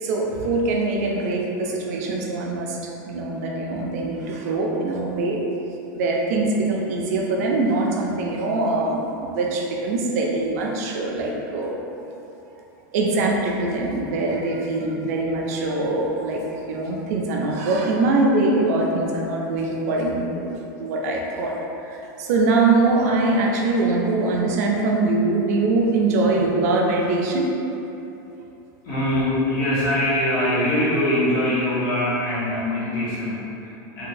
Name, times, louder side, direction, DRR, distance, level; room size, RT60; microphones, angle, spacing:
voice 1, 0.0-5.4 5.9-12.0 12.9-21.6 21.8-27.5, right 2 dB, 50° right, -1 dB, 0.4 m, -23 dB
voice 2, 28.8-34.1, left 1 dB, 70° left, -10 dB, 1.4 m, -23 dB
2.7 x 2.5 x 3.8 m, 2.9 s
supercardioid pair, 180°, 11 cm